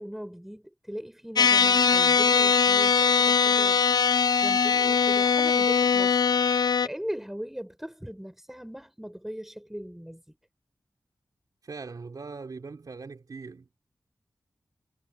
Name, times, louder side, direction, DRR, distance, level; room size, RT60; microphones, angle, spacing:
voice 1, 0.0-10.4, equal, 5° right, 7.6 m, -39 dB
sound 1, 1.4-6.9, left 6 dB, 70° left, 0.6 m, -21 dB
voice 2, 11.6-13.6, right 4 dB, 60° right, 3.9 m, -40 dB
wide cardioid pair, 100°, 7 cm